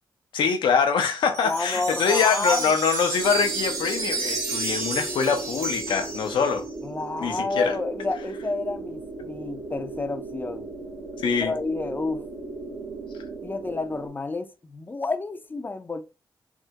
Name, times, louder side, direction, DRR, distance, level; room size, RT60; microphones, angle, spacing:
voice 1, 0.3-6.6 7.2-7.8 11.2-11.5, left 6 dB, 90° left, 0.6 m, -24 dB
sound 1, 1.3-6.7, right 3 dB, 35° right, 1.1 m, -31 dB
voice 2, 1.4-2.7 6.8-10.7 11.4-12.2 13.4-16.0, left 3 dB, 25° left, 0.5 m, -30 dB
sound 2, 3.2-14.1, right 3 dB, 70° right, 1.3 m, -37 dB
3.5 x 2.2 x 2.8 m
cardioid pair, 80°, 8 cm